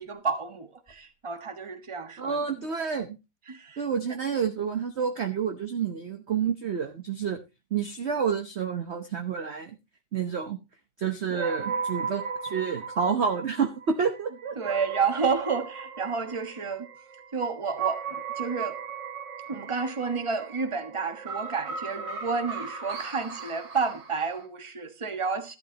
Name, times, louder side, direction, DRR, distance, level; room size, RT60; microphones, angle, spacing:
voice 1, 0.0-2.4 3.5-3.8 11.3-11.6 14.6-16.9 17.3-18.8 19.5-25.6, right 5 dB, 20° right, 1.2 m, -30 dB
voice 2, 2.2-3.1 3.8-7.4 7.7-9.7 10.1-10.6 11.0-14.8, right 6 dB, 45° right, 1.0 m, -29 dB
sound 1, 11.4-24.5, right 5 dB, 75° right, 2.8 m, -37 dB
14.0 x 12.0 x 2.9 m
omnidirectional pair, 2.0 m